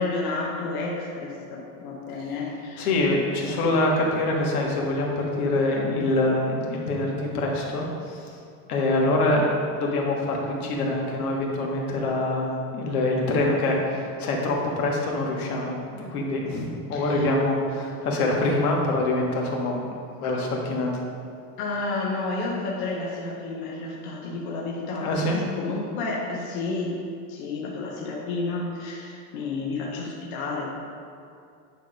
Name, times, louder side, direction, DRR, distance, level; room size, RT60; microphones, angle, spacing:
voice 1, 0.0-2.9 3.4-3.7 16.9-17.2 21.6-27.0 27.3-30.7, left 3 dB, 30° left, -3 dB, 0.7 m, -31 dB
voice 2, 2.8-8.2 8.7-9.5 9.8-20.9 25.0-25.4, left 2 dB, 65° left, -1 dB, 1.6 m, -25 dB
9.2 x 3.5 x 5.1 m, 2.4 s
supercardioid pair, 175°, 48 cm